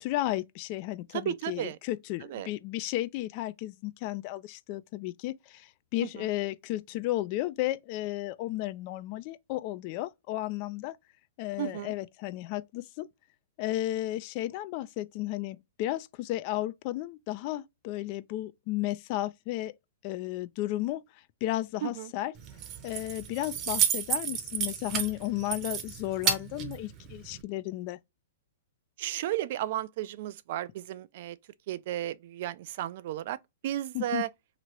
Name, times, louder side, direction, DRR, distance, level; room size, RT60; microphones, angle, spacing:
voice 1, 0.0-11.0 11.4-13.1 13.6-19.7 20.0-21.0 21.4-22.3 22.8-28.0 33.9-34.2, left 15 dB, 45° left, 0.3 m, -33 dB
voice 2, 1.1-1.8 2.3-2.5 6.2-6.3 11.6-11.9 21.8-22.1 29.0-31.4 31.7-33.4 33.6-34.3, right 13 dB, 55° right, 0.3 m, -33 dB
Keys jangling, 22.4-27.4, right 8 dB, 30° right, 0.7 m, -32 dB
2.9 x 2.5 x 3.0 m
hypercardioid pair, 135°, 0 cm